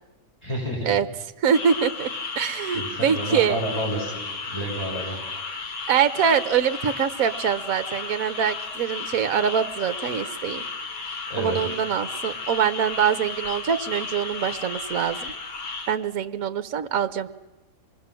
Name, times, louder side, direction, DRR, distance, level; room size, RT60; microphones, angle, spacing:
voice 1, 0.4-1.0 2.7-5.2 11.3-11.6, equal, 15° left, -3 dB, 6.8 m, -30 dB
voice 2, 1.4-3.6 5.9-10.6 11.4-15.3 15.9-17.3, right 8 dB, 55° right, 11 dB, 1.5 m, -24 dB
sound 1, 1.5-16.0, left 4 dB, 85° left, 2.6 m, -34 dB
26.5 x 21.5 x 7.7 m, 1.0 s
omnidirectional pair, 1.8 m